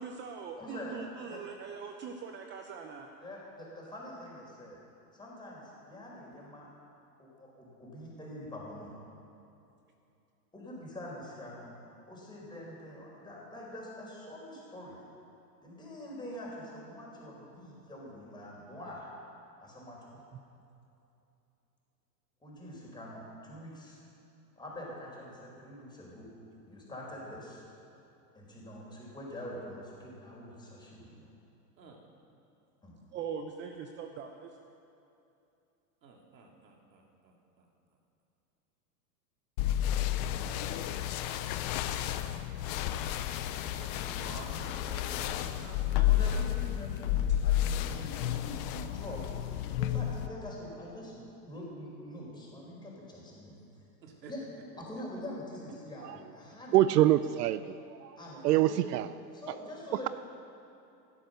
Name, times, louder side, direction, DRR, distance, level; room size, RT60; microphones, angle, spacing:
voice 1, 0.0-3.1 33.1-34.5, right 6 dB, 20° right, 4 dB, 0.7 m, -41 dB
voice 2, 0.6-0.9 1.3-1.4 3.2-4.8 5.1-6.7 7.2-8.9 10.5-11.7 12.1-15.0 15.6-19.1 19.6-20.1 22.4-24.0 24.6-26.3 26.7-27.6 28.3-31.3 32.8-32.9 46.0-49.2 49.8-51.1 51.4-53.5 54.3-54.4 54.8-57.0 58.2-58.8 59.3-60.1, left 1 dB, 10° left, -4 dB, 4.5 m, -45 dB
voice 3, 36.0-37.7 41.8-42.1 43.4-46.3 54.0-54.3 54.8-54.9, right 3 dB, 90° right, 0 dB, 3.1 m, -51 dB
sound 1, 39.6-50.3, left 11 dB, 25° left, 0.4 m, -31 dB
voice 4, 56.7-58.2 58.4-59.1, right 14 dB, 70° right, 14 dB, 0.6 m, -25 dB
15.5 x 12.0 x 6.6 m, 2.8 s
hypercardioid pair, 135°, 50 cm